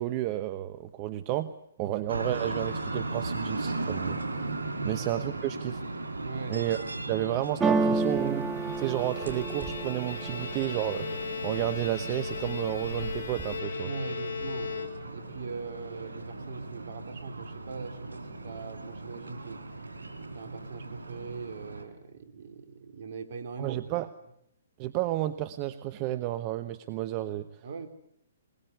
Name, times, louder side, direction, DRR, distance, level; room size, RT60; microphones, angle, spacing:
voice 1, 0.0-1.5 1.8-4.2 4.8-5.8 6.5-8.5 8.8-11.1 11.4-13.9 23.6-24.1 24.8-27.5, right 14 dB, 35° right, 12 dB, 1.0 m, -31 dB
sound 1, 2.1-21.8, right 2 dB, 85° right, 4.1 m, -37 dB
voice 2, 6.2-6.6 13.8-19.6 20.2-23.8 27.6-27.9, right 5 dB, 60° right, 6 dB, 3.5 m, -41 dB
sound 2, 7.6-11.5 11.9-12.5 12.8-13.6, right 4 dB, 15° right, 1.7 m, -30 dB
Bowed string instrument, 8.4-15.3, left 6 dB, 70° left, 4.4 m, -38 dB
21.5 x 21.5 x 8.1 m, 0.75 s
hypercardioid pair, 135°, 0 cm